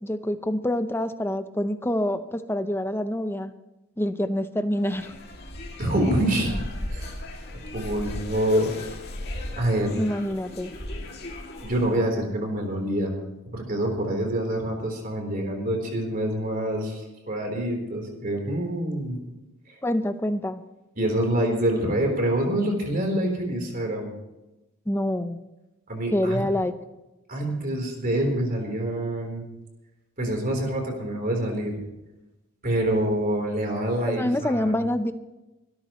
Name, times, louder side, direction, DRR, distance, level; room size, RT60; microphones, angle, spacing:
voice 1, 0.0-3.5 4.0-5.1 10.0-10.7 19.8-20.6 24.9-25.4 26.1-26.7 34.2-35.1, left 1 dB, 10° left, 9 dB, 0.7 m, -26 dB
sound 1, 4.8-12.0, left 1 dB, 45° left, 2.4 m, -37 dB
voice 2, 5.8-6.5 6.9-7.1 7.7-8.7 9.6-10.0 11.6-13.1 13.5-19.2 19.7-19.8 21.0-24.1 25.9-26.4 27.3-29.4 30.2-31.8 32.6-34.7, right 1 dB, 40° right, 2 dB, 3.7 m, -26 dB
25.0 x 13.0 x 3.1 m, 1.0 s
head